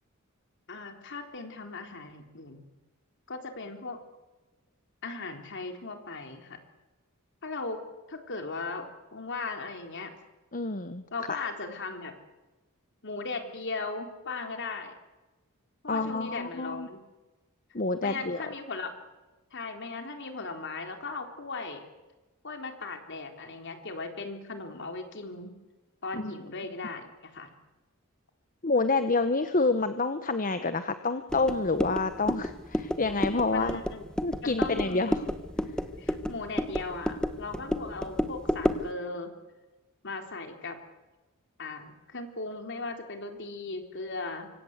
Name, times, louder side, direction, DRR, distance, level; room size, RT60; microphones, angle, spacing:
voice 1, 0.7-2.6 3.3-4.0 5.0-6.6 7.4-7.8 8.1-10.1 11.1-12.1 13.0-14.9 15.8-17.0 18.0-18.9 19.5-21.8 22.4-25.5 26.0-27.5 33.5-34.0 34.4-35.0 36.0-39.3 40.0-40.8 41.6-44.5, left 3 dB, 55° left, 5 dB, 3.8 m, -37 dB
voice 2, 10.5-11.0 15.9-16.9 17.7-18.4 26.1-26.3 28.6-33.8 34.2-35.2, left 3 dB, 40° left, 10 dB, 1.2 m, -28 dB
sound 1, 31.3-38.9, equal, 5° left, 1.5 m, -31 dB
25.5 x 25.5 x 8.2 m, 1.1 s
head